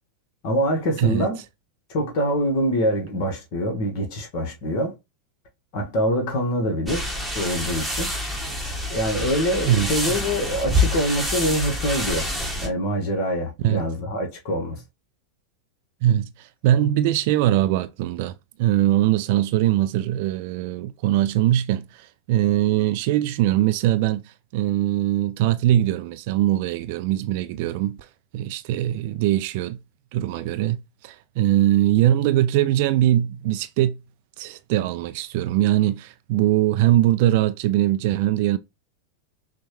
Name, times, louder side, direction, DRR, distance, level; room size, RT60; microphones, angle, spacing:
voice 1, 0.4-1.4 1.9-4.9 5.7-7.1 7.3-8.1 8.9-12.3 12.6-14.8, equal, 45° left, 1.1 m, -24 dB
voice 2, 1.0-1.3 9.6-9.9 13.6-13.8 16.0-28.1 28.3-29.8 30.1-34.0 34.4-38.6, right 13 dB, 50° right, 0.3 m, -21 dB
sound 1, 6.9-12.7, left 1 dB, ahead, 1.2 m, -27 dB
6.0 x 2.2 x 3.0 m
figure-of-eight pair, 90°, 0 cm